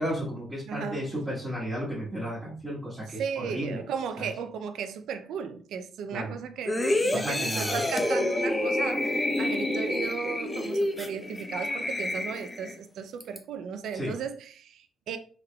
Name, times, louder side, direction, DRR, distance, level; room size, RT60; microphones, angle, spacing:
voice 1, 0.0-3.8 4.2-4.3 6.1-6.3 7.1-7.8 13.9-14.1, equal, 5° right, 1.3 m, -33 dB
voice 2, 0.7-1.1 3.1-15.2, right 7 dB, 75° right, 0.4 m, -35 dB
sound 1, 6.7-12.8 13.2-13.4, left 1 dB, 15° left, 0.6 m, -28 dB
3.5 x 3.4 x 2.2 m
cardioid pair, 90°, 0 cm